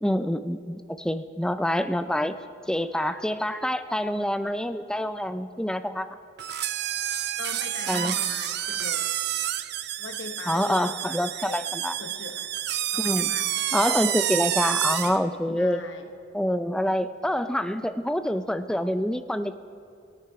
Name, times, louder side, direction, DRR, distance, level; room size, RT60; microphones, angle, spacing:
voice 1, 0.0-2.3 2.7-6.1 7.9-8.2 10.5-11.9 13.0-13.4 13.7-15.8 16.3-19.6, equal, 5° left, 10 dB, 0.4 m, -26 dB
sound 1, 6.4-15.2, right 12 dB, 55° right, 0.5 m, -29 dB
voice 2, 7.4-9.1 10.0-11.7 12.0-12.5 12.9-13.5 15.6-16.1, left 4 dB, 65° left, 7 dB, 1.0 m, -40 dB
18.5 x 8.9 x 5.7 m, 2.4 s
head